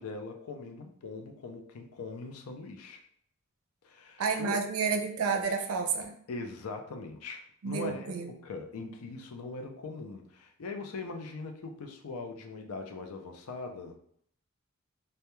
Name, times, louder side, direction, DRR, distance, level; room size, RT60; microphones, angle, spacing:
voice 1, 0.0-3.0 3.8-4.6 6.3-14.0, left 3 dB, 85° left, 5 dB, 0.4 m, -41 dB
voice 2, 4.2-6.1 7.6-8.3 8.8-8.9, right 5 dB, 75° right, 5 dB, 0.4 m, -30 dB
2.2 x 2.1 x 2.9 m, 0.65 s
head